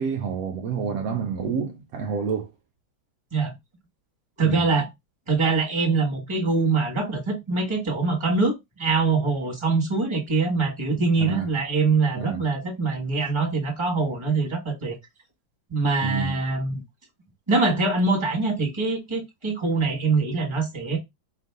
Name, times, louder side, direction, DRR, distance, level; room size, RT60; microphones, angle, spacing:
voice 1, 0.0-2.5 4.4-4.7 11.2-11.5 12.1-12.5 16.0-16.4, right 6 dB, 80° right, 0.8 m, -29 dB
voice 2, 4.4-4.9 5.3-14.9 15.7-16.8 17.5-21.0, right 4 dB, 15° right, 1.4 m, -24 dB
4.5 x 2.5 x 3.6 m
omnidirectional pair, 2.1 m